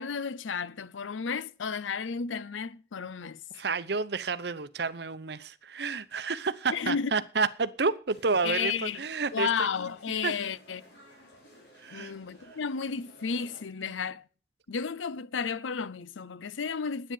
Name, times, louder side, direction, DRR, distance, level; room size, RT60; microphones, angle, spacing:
voice 1, 0.0-3.4 6.7-7.1 8.4-9.0 9.3-10.8 11.9-14.2 14.7-17.1, left 6 dB, 85° left, 0.6 m, -32 dB
voice 2, 3.5-8.7 9.0-9.5 10.2-10.3 11.8-12.1, right 4 dB, 60° right, 0.8 m, -30 dB
sound 1, 8.1-13.6, equal, 65° left, 5.8 m, -55 dB
10.5 x 8.7 x 8.4 m
head